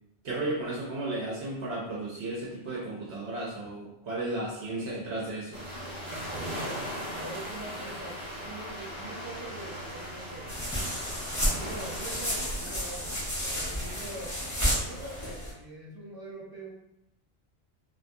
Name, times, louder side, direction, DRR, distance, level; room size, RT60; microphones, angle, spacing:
voice 1, 0.2-5.6, right 2 dB, 75° right, -5 dB, 0.9 m, -34 dB
sound 1, 5.5-15.3, equal, 50° right, 1.0 m, -39 dB
voice 2, 6.3-10.6 11.4-14.4 14.6-16.7, right 1 dB, 30° right, -6 dB, 0.5 m, -44 dB
sound 2, 10.5-15.5, equal, 20° left, 0.7 m, -31 dB
2.6 x 2.5 x 2.2 m, 0.83 s
omnidirectional pair, 1.1 m